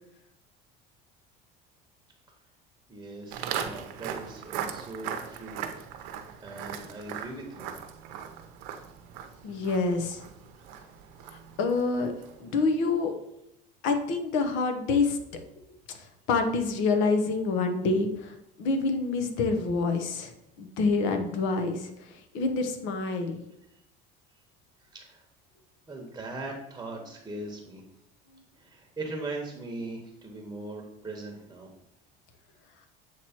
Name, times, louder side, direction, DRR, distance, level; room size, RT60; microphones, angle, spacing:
voice 1, 2.9-5.6 6.4-7.7 24.9-25.2 25.9-27.8 28.6-31.7, right 2 dB, 15° right, 1 dB, 1.1 m, -39 dB
Walk footsteps, 3.3-12.5, right 8 dB, 85° right, 0.7 m, -39 dB
voice 2, 9.4-10.3 11.3-12.1 12.4-13.1 13.8-15.4 15.9-16.0 16.3-20.3 20.6-23.4, left 3 dB, 75° left, 6 dB, 1.0 m, -27 dB
7.8 x 3.1 x 4.3 m, 0.82 s
cardioid pair, 130°, 20 cm